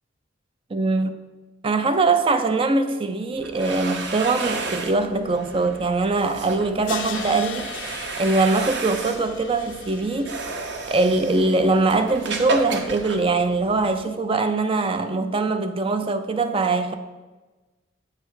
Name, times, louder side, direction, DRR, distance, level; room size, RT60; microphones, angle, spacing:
voice 1, 0.7-1.1 1.6-10.4 10.9-16.9, right 3 dB, 30° right, 0.4 m, -22 dB
sound 1, 3.3-14.0, right 3 dB, 60° right, 0.8 m, -33 dB
Crash cymbal, 6.9-11.9, left 8 dB, 75° left, 0.6 m, -39 dB
8.1 x 3.2 x 6.4 m
head